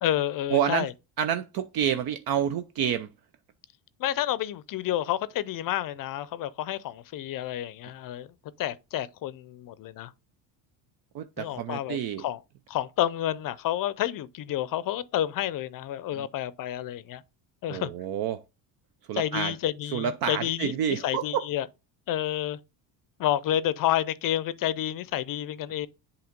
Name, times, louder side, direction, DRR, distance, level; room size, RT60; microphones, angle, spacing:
voice 1, 0.0-0.9 4.0-8.3 8.6-10.1 11.4-12.4 12.7-17.2 17.6-17.9 19.1-21.7 22.1-22.6 23.2-25.9, left 12 dB, 50° left, 0.5 m, -29 dB
voice 2, 0.5-0.9 1.2-3.1 11.1-12.3 16.1-16.3 17.7-18.4 19.1-19.5 19.9-21.5, right 9 dB, 55° right, 0.6 m, -28 dB
7.9 x 2.9 x 5.1 m
cardioid pair, 115°, 43 cm